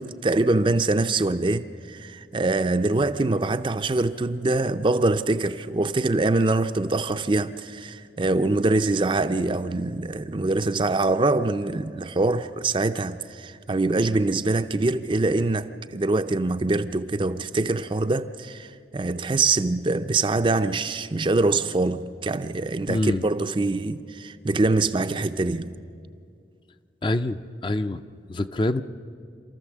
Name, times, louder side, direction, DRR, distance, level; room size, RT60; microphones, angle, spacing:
voice 1, 0.0-25.7, right 2 dB, 30° right, 0.5 m, -24 dB
voice 2, 22.9-23.3 27.0-28.0 28.3-28.8, left 1 dB, 25° left, 0.5 m, -25 dB
27.0 x 14.0 x 7.3 m
head